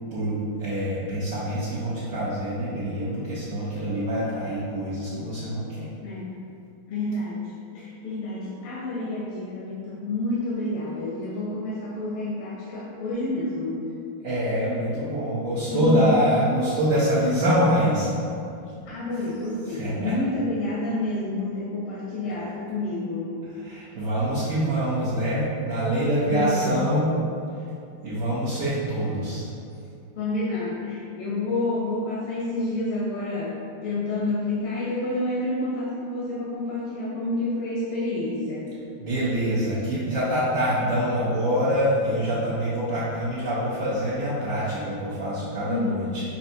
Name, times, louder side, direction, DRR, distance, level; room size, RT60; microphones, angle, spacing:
voice 1, 0.1-5.9 14.2-18.2 19.7-20.1 23.6-27.1 28.0-29.4 39.0-46.2, equal, 80° right, -10 dB, 0.7 m, -25 dB
voice 2, 6.0-6.3 6.9-13.8 15.7-16.1 18.8-23.4 26.2-26.8 30.2-33.5 33.8-38.7 45.7-46.0, left 2 dB, 85° left, -7 dB, 1.5 m, -29 dB
5.4 x 2.6 x 2.6 m, 2.5 s
omnidirectional pair, 2.3 m